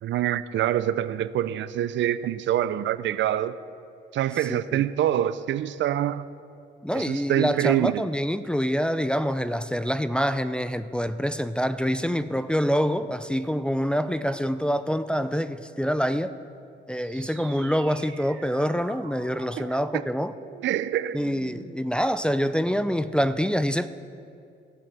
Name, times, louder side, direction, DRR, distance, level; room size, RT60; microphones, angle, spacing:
voice 1, 0.0-3.6 4.1-6.3 6.9-8.0 19.6-19.7 19.9-20.0 20.6-21.2, right 12 dB, 70° right, 15 dB, 0.5 m, -25 dB
voice 2, 4.5-4.8 6.8-16.3 16.9-20.3 21.1-23.9, equal, 5° left, 11 dB, 0.4 m, -26 dB
sound 1, 16.9-21.9, right 7 dB, 90° right, 1.2 m, -47 dB
15.5 x 7.3 x 6.9 m, 2.5 s
cardioid pair, 90°, 20 cm